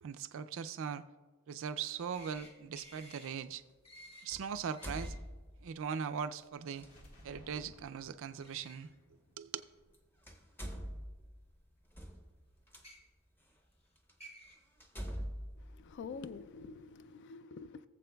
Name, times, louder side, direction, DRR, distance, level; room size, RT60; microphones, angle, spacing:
voice 1, 0.0-1.1 1.5-3.6 4.2-5.1 5.6-6.9 7.2-8.9 9.4-9.5, right 7 dB, 60° right, 12 dB, 0.4 m, -40 dB
sound 1, 2.1-2.5 2.7-3.3 3.8-4.2 4.7-5.1 8.4-8.7 9.6-9.7 10.9-11.0 12.7-12.9 13.8-13.9 14.2-14.5, equal, 30° left, 1.7 m, -54 dB
sound 2, 2.2-2.4 4.3-5.8 6.7-6.9 8.8-8.9 9.8-10.0 10.2-12.8 13.5-13.6 14.1-14.2 14.8-16.6, equal, 10° left, 0.7 m, -44 dB
sound 3, 6.8-10.6, equal, 85° left, 1.7 m, -60 dB
voice 2, 15.6-17.9, left 5 dB, 50° left, 14 dB, 0.3 m, -47 dB
18.0 x 7.4 x 2.3 m, 1.4 s
head